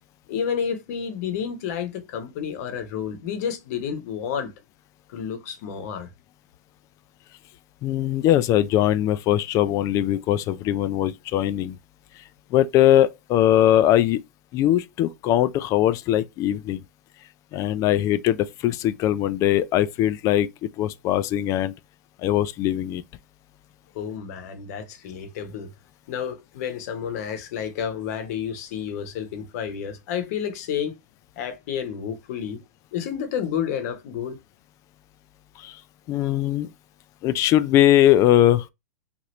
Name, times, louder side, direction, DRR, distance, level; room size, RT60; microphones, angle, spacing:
voice 1, 0.3-4.5 5.1-6.1 23.9-25.7 26.1-30.9 31.4-32.6 32.9-34.4, left 8 dB, 55° left, 0.9 m, -30 dB
voice 2, 7.8-11.8 12.5-14.2 14.5-16.8 17.5-21.7 22.2-23.0 35.6-35.8 36.1-36.7 37.2-38.7, left 12 dB, 35° left, 0.3 m, -21 dB
2.8 x 2.5 x 3.0 m
hypercardioid pair, 115°, 10 cm